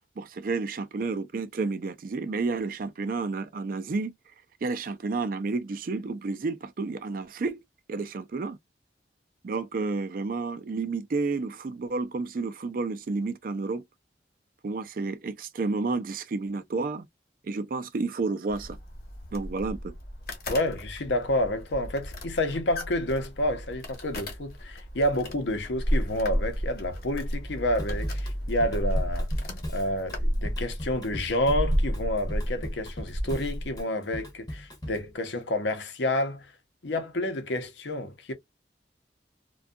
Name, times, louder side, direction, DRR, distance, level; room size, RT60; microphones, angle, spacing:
voice 1, 0.2-4.1 4.6-7.6 7.9-8.6 9.4-13.8 14.6-17.1 17.4-18.8 19.3-19.9, right 3 dB, 50° right, 0.4 m, -31 dB
sound 1, 18.5-33.8, equal, 55° left, 1.0 m, -32 dB
voice 2, 20.5-29.3 29.7-36.5 36.8-38.3, left 1 dB, 80° left, 0.7 m, -29 dB
Drum kit / Drum, 27.8-35.1, equal, 20° left, 0.7 m, -39 dB
2.6 x 2.3 x 2.2 m
head